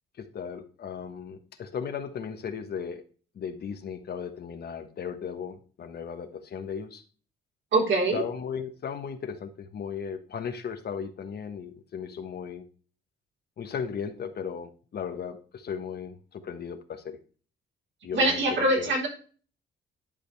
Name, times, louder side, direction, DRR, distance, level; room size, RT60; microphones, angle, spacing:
voice 1, 0.2-3.0 3.3-7.0 8.1-12.6 13.6-17.2 18.0-18.9, left 7 dB, 55° left, 8 dB, 1.2 m, -36 dB
voice 2, 7.7-8.2 18.1-19.1, right 2 dB, 70° right, -1 dB, 4.1 m, -23 dB
11.0 x 5.1 x 3.4 m, 0.40 s
cardioid pair, 90°, 20 cm